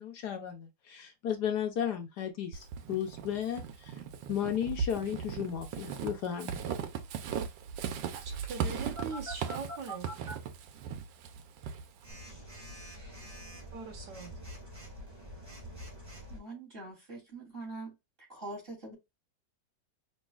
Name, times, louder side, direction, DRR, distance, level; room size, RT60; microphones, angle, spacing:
voice 1, 0.0-3.9 4.3-6.6, left 9 dB, 70° left, 1.2 m, -34 dB
Walk footsteps / Squeak, 2.5-12.1, right 7 dB, 90° right, 1.4 m, -38 dB
voice 2, 8.1-10.1 13.7-14.3, right 4 dB, 70° right, 1.7 m, -41 dB
Telephone, 9.0-10.3 12.0-16.4, equal, 10° right, 1.8 m, -45 dB
voice 3, 16.3-17.9 18.3-19.0, right 2 dB, 30° right, 3.2 m, -43 dB
5.3 x 3.1 x 2.3 m
omnidirectional pair, 2.0 m